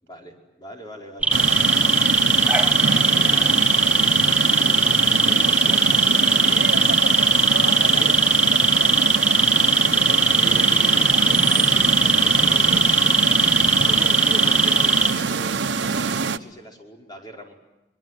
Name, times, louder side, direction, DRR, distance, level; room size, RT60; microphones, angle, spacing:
voice 1, 0.0-2.2 2.7-3.6 4.5-6.6 7.9-8.1 9.4-13.3 13.8-17.5, right 1 dB, 25° left, 5.2 m, -40 dB
sound 1, 1.2-15.1, right 2 dB, 10° right, 1.2 m, -19 dB
sound 2, 1.3-16.4, right 5 dB, 90° right, 0.9 m, -25 dB
voice 2, 6.4-8.2 8.5-9.7, right 3 dB, 70° right, 2.6 m, -34 dB
24.0 x 22.5 x 9.3 m
head